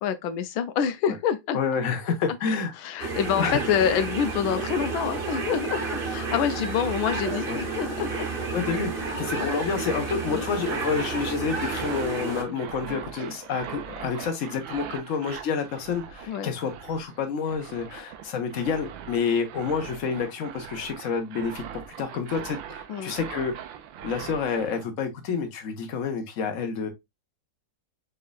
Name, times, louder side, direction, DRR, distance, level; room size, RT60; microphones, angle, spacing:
voice 1, 0.0-1.6 2.8-8.3 9.4-9.5 10.3-10.5 16.3-16.5 22.9-23.1, left 8 dB, 90° left, 1.4 m, -27 dB
voice 2, 1.5-2.7 3.4-3.9 7.5-7.6 8.5-23.5 24.0-26.9, left 5 dB, 45° left, 1.3 m, -29 dB
sound 1, 3.0-12.4, right 4 dB, 35° right, 1.0 m, -31 dB
sound 2, 10.4-24.9, right 9 dB, 80° right, 1.4 m, -41 dB
5.3 x 3.8 x 2.2 m
omnidirectional pair, 2.1 m